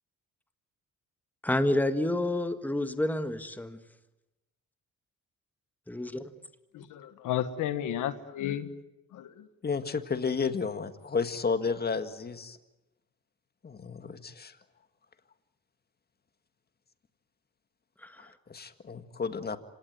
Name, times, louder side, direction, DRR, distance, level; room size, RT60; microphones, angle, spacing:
voice 1, 1.4-3.8 5.9-6.3 18.0-18.3, left 1 dB, 5° left, 9 dB, 1.6 m, -29 dB
voice 2, 6.7-8.7 9.1-9.5, left 11 dB, 85° left, 11 dB, 1.4 m, -33 dB
voice 3, 9.6-12.6 13.6-14.5 18.5-19.6, left 5 dB, 30° left, 9 dB, 1.9 m, -32 dB
26.0 x 18.5 x 9.2 m, 1.0 s
cardioid pair, 90°, 30 cm